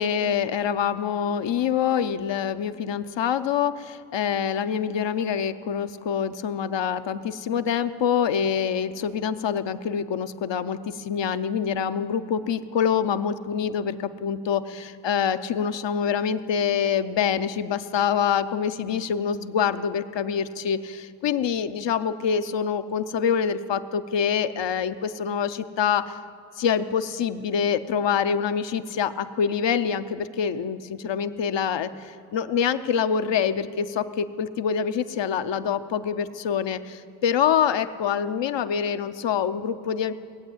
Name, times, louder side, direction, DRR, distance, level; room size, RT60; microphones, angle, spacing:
voice 1, 0.0-26.2 26.6-40.1, left 7 dB, 70° left, 11 dB, 0.8 m, -25 dB
19.5 x 8.4 x 8.0 m, 2.4 s
cardioid pair, 60°, 44 cm